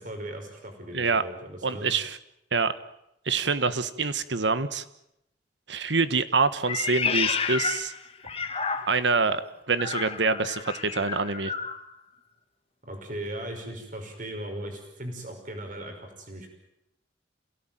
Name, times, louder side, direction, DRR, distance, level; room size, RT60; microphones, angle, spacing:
voice 1, 0.0-1.9 12.9-16.5, right 1 dB, 45° right, 4 dB, 5.5 m, -38 dB
voice 2, 1.6-2.2 2.5-2.7 3.2-4.8 5.7-7.9 8.9-9.4 9.7-11.5, right 4 dB, 75° right, 13 dB, 1.3 m, -26 dB
Meow, 6.6-9.2 9.7-11.8, left 5 dB, 30° left, 1.4 m, -30 dB
27.5 x 17.5 x 9.1 m, 0.85 s
head